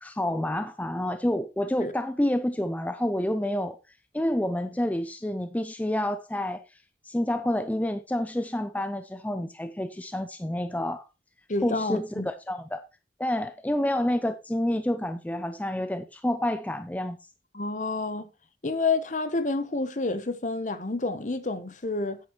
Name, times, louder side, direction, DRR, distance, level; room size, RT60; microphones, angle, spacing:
voice 1, 0.0-3.8 4.1-6.6 7.0-11.1 11.6-12.8 13.2-17.2, left 1 dB, 10° left, 0.4 m, -28 dB
voice 2, 11.5-12.3 17.5-18.3 18.6-22.2, left 3 dB, 45° left, 0.9 m, -29 dB
9.6 x 9.2 x 3.0 m
head